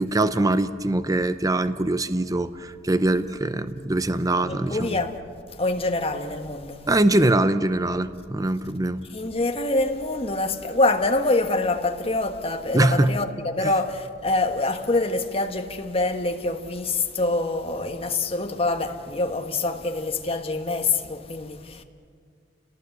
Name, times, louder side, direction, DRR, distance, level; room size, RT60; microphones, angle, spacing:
voice 1, 0.0-5.0 6.9-9.0 12.7-13.2 13.6-13.7, right 2 dB, 20° right, 0.7 m, -23 dB
voice 2, 4.5-5.2 5.5-6.8 9.1-21.8, left 2 dB, 35° left, 1.5 m, -25 dB
29.5 x 18.5 x 8.1 m
head